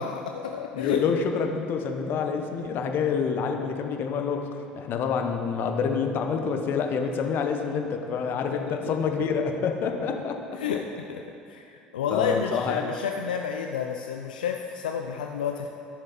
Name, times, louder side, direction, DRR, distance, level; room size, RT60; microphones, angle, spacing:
voice 1, 0.0-1.0 8.5-9.0 10.1-10.2 10.6-15.7, left 7 dB, 80° left, 4 dB, 0.4 m, -31 dB
voice 2, 0.7-4.4 4.7-10.4 12.1-12.8, left 6 dB, 50° left, 4 dB, 1.0 m, -27 dB
13.5 x 6.9 x 4.3 m, 2.6 s
hypercardioid pair, 65°, 4 cm